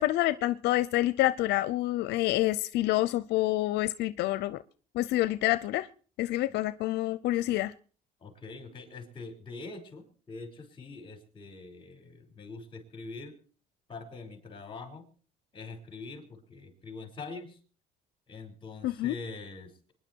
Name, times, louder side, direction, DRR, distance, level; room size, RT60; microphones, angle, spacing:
voice 1, 0.0-4.6 4.9-5.9 6.2-7.7 18.8-19.1, left 16 dB, 85° left, 14 dB, 0.6 m, -27 dB
voice 2, 8.2-13.3 13.9-15.1 15.5-17.6 18.3-19.9, left 3 dB, 30° left, 7 dB, 4.9 m, -44 dB
24.0 x 10.5 x 4.5 m, 0.41 s
cardioid pair, 110°, 17 cm